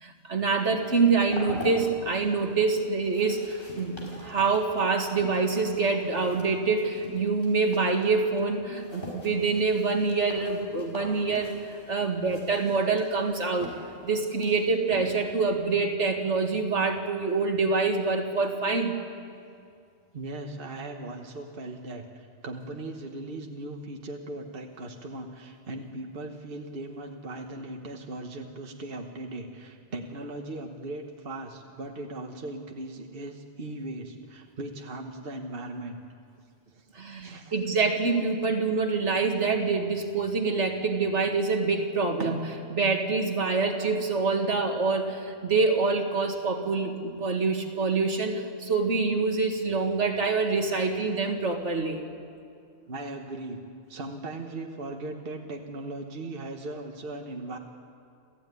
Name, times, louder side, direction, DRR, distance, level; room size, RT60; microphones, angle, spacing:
voice 1, 0.0-13.7 14.0-18.9 37.0-52.0, right 4 dB, 70° right, 4 dB, 2.3 m, -26 dB
sound 1, 0.8-15.5, left 1 dB, 45° left, 5.2 m, -45 dB
voice 2, 20.1-36.0 36.7-37.5 52.9-53.6 53.9-57.6, right 2 dB, 50° right, 3 dB, 1.5 m, -38 dB
28.0 x 15.0 x 9.5 m, 2.3 s
omnidirectional pair, 1.2 m